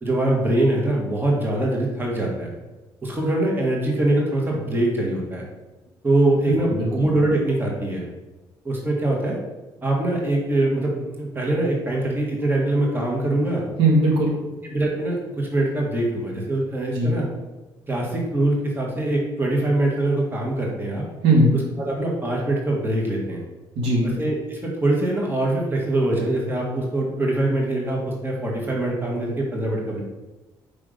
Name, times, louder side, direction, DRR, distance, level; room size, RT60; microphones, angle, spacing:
voice 1, 0.0-2.5 3.0-5.5 6.0-8.1 8.7-9.4 9.8-13.6 14.6-17.3 17.9-21.0 21.8-23.4 24.0-30.0, right 1 dB, 25° right, -1 dB, 1.6 m, -23 dB
voice 2, 6.5-6.9 13.8-14.4 16.9-17.1 21.2-21.5 23.8-24.1, right 1 dB, 80° right, -2 dB, 1.7 m, -19 dB
5.1 x 3.5 x 5.1 m, 1.1 s
cardioid pair, 85°, 9 cm